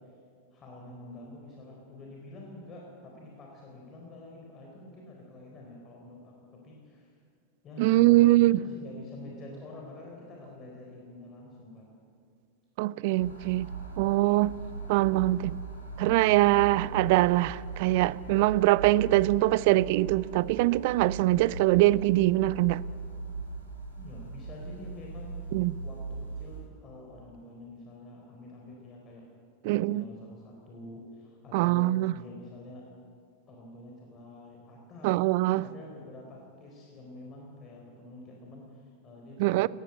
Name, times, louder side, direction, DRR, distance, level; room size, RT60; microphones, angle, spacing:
voice 1, 0.5-6.3 6.6-7.2 7.6-11.9 23.9-25.5 25.8-29.3 29.6-32.8 33.5-35.2 35.6-39.7, left 2 dB, 30° left, 4.2 m, -47 dB
voice 2, 7.8-8.6 12.8-13.7 14.0-14.6 14.9-15.6 16.0-22.8 25.5-25.7 29.6-30.0 31.5-32.1 35.0-35.6 39.4-39.7, right 18 dB, 50° right, 0.5 m, -23 dB
sound 1, 13.1-26.6, right 4 dB, 85° right, 5.6 m, -39 dB
19.5 x 15.0 x 9.1 m
figure-of-eight pair, 90°, 0 cm